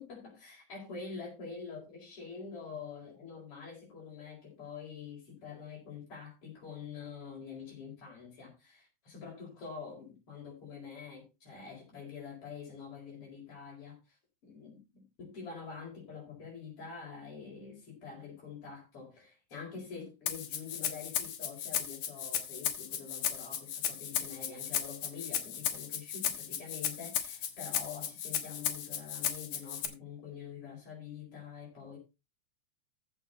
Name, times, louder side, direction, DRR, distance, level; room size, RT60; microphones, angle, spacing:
voice 1, 0.0-14.2 14.4-32.0, left 5 dB, 45° left, 5.6 m, -46 dB
Rattle (instrument), 20.3-29.9, left 9 dB, 90° left, 3.0 m, -35 dB
15.0 x 6.3 x 4.1 m
omnidirectional pair, 3.5 m